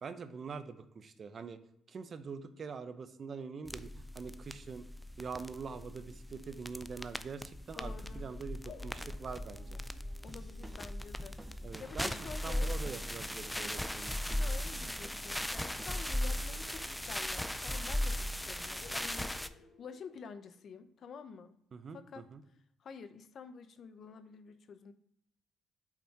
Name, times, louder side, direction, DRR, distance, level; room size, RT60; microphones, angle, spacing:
voice 1, 0.0-1.6 1.9-4.8 5.2-9.8 11.6-14.4 21.7-22.4, right 5 dB, 45° right, 11 dB, 0.6 m, -44 dB
sound 1, 3.7-19.5, left 1 dB, 5° left, 0.4 m, -38 dB
voice 2, 7.8-8.3 10.2-11.4 11.8-12.7 14.4-21.5 21.9-22.2 22.8-24.9, left 6 dB, 60° left, 11 dB, 0.6 m, -49 dB
sound 2, 8.6-14.1 16.3-17.8 18.0-18.1 18.8-21.0, left 6 dB, 90° left, 1.0 m, -60 dB
sound 3, 10.2-16.1, right 1 dB, 10° right, 0.8 m, -54 dB
5.8 x 4.3 x 4.6 m, 0.74 s
cardioid pair, 90°, 0 cm